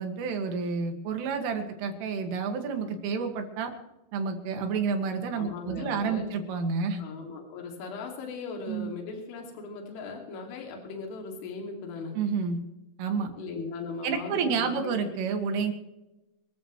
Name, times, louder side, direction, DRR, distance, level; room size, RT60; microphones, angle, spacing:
voice 1, 0.0-3.7 4.1-7.0 8.7-8.9 12.2-12.6 13.0-13.3 14.0-15.7, right 5 dB, 85° right, 5 dB, 4.5 m, -30 dB
voice 2, 5.4-6.3 7.0-12.2 13.4-15.0, left 4 dB, 75° left, 2 dB, 4.8 m, -38 dB
26.0 x 14.5 x 3.2 m, 0.95 s
omnidirectional pair, 5.6 m